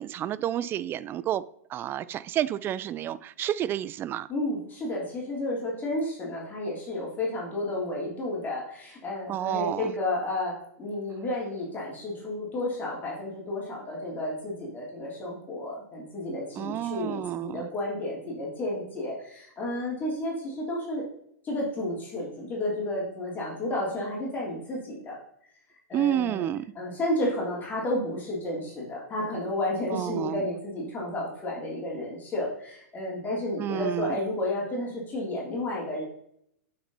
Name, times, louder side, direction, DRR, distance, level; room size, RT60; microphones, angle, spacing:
voice 1, 0.0-1.4 1.7-4.3 9.3-9.9 16.6-17.7 25.9-26.7 29.9-30.5 33.6-34.2, right 11 dB, 25° right, 17 dB, 0.4 m, -30 dB
voice 2, 4.3-21.0 21.4-25.2 25.9-26.5 26.7-36.0, left 1 dB, 20° left, -4 dB, 3.3 m, -32 dB
8.0 x 6.3 x 4.1 m, 0.70 s
hypercardioid pair, 110°, 8 cm